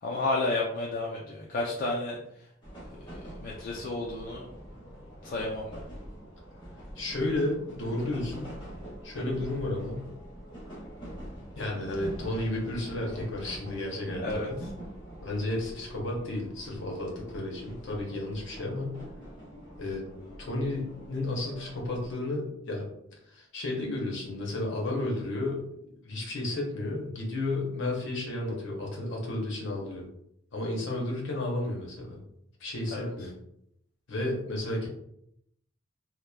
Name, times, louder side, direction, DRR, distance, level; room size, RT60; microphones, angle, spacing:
voice 1, 0.0-2.5 3.1-4.5 5.2-5.8 14.2-14.5 32.9-33.3, left 2 dB, 45° left, -2 dB, 0.3 m, -32 dB
sound 1, 2.6-22.2, right 1 dB, 20° left, 1.0 m, -44 dB
voice 2, 7.0-8.5 9.0-10.1 11.5-14.6 15.2-19.0 19.8-20.0 20.4-22.9 23.3-25.6 26.0-30.0 30.5-32.2 32.6-33.3 34.1-34.9, left 2 dB, 60° left, -1 dB, 0.7 m, -32 dB
2.8 x 2.1 x 2.2 m, 0.75 s
head